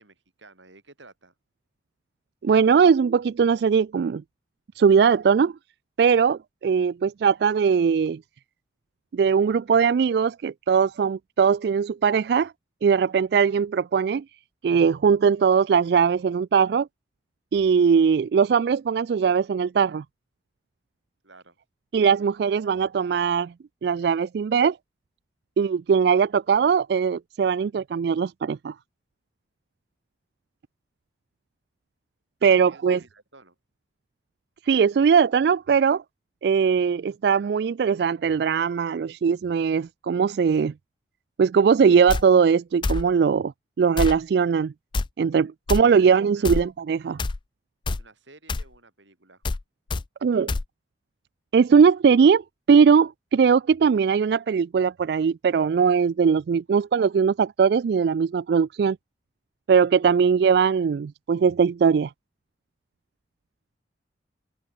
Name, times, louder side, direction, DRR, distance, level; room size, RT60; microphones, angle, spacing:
voice 1, 0.0-1.3 21.2-21.6 32.4-33.6 45.9-46.0 46.3-46.6 47.9-49.4 56.7-56.9, right 3 dB, 90° right, 5.8 m, -52 dB
voice 2, 2.4-4.2 4.8-5.5 6.0-8.2 9.1-12.5 12.8-14.2 14.6-16.9 17.5-20.0 21.9-23.5 23.8-24.8 25.6-28.7 32.4-33.0 34.7-36.0 36.4-40.7 41.4-43.5 43.8-44.7 45.2-47.2 50.2-50.5 51.5-52.4 52.7-59.0 59.7-62.1, right 6 dB, 60° right, 0.3 m, -20 dB
sound 1, 42.1-42.2 42.8-43.0 44.0-44.2 44.9-45.1 45.7-45.8 46.4-46.6 47.2-47.4 47.9-48.0 48.5-48.7 49.4-49.6 49.9-50.0 50.5-50.6, left 3 dB, 25° left, 0.3 m, -26 dB
head